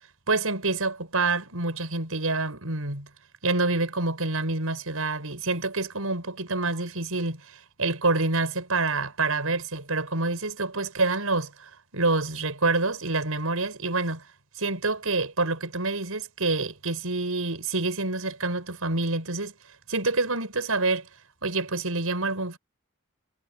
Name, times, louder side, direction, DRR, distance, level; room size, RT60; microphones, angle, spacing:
voice 1, 0.3-3.1 3.4-14.2 14.6-19.5 19.9-21.1 21.4-22.6, right 3 dB, 75° right, 5.6 m, -27 dB
head